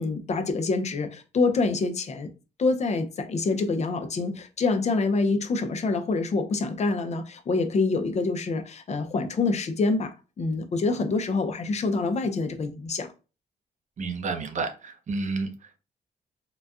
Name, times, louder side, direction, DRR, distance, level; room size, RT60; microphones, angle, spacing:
voice 1, 0.0-2.3 2.6-13.1, left 3 dB, 45° left, 0.5 m, -26 dB
voice 2, 14.0-15.5, right 3 dB, 50° right, 0.6 m, -30 dB
3.9 x 2.2 x 2.4 m
cardioid pair, 115°, 16 cm